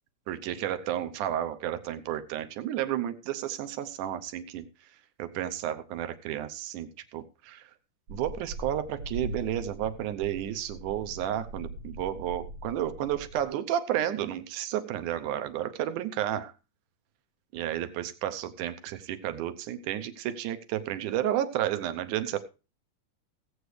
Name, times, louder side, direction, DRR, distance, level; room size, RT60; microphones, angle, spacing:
voice 1, 0.3-4.7 5.2-7.7 8.1-16.5 17.5-22.4, right 11 dB, 80° right, 10 dB, 2.3 m, -32 dB
sound 1, 8.1-13.4, right 1 dB, 65° right, 2.8 m, -41 dB
17.0 x 7.9 x 3.2 m, 0.31 s
omnidirectional pair, 3.6 m